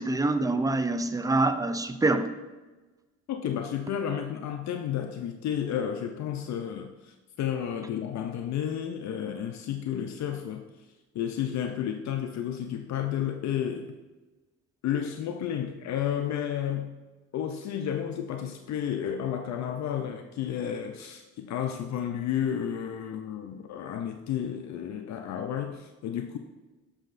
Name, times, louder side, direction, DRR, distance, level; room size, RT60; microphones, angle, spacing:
voice 1, 0.0-2.3, right 2 dB, 10° right, 10 dB, 0.4 m, -25 dB
voice 2, 3.3-10.9 11.1-13.9 14.8-16.9 17.3-26.4, left 9 dB, 65° left, 6 dB, 0.5 m, -32 dB
7.4 x 6.3 x 2.5 m, 1.2 s
cardioid pair, 90°, 30 cm